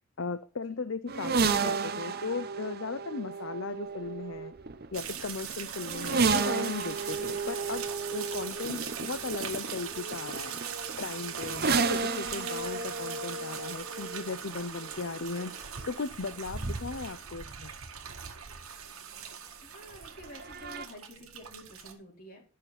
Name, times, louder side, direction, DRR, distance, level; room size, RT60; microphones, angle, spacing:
voice 1, 0.2-4.5 4.9-10.6 11.0-17.7, left 4 dB, 60° left, 12 dB, 0.6 m, -37 dB
sound 1, 1.1-18.8 19.9-20.9, right 4 dB, 45° right, 0.8 m, -33 dB
sound 2, 4.9-21.9, right 8 dB, 75° right, 1.7 m, -41 dB
voice 2, 11.3-11.8 19.6-22.4, left 1 dB, 40° left, -1 dB, 4.6 m, -50 dB
11.0 x 6.6 x 4.2 m, 0.35 s
head